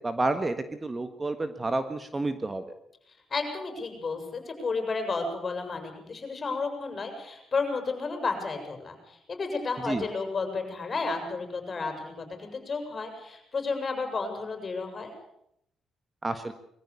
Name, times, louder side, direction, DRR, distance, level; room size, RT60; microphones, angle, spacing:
voice 1, 0.0-2.6 9.8-10.1 16.2-16.5, right 2 dB, 25° right, 10 dB, 1.6 m, -30 dB
voice 2, 3.3-15.1, left 4 dB, 35° left, 5 dB, 6.9 m, -32 dB
22.0 x 15.0 x 8.4 m, 0.75 s
cardioid pair, 90°, 0 cm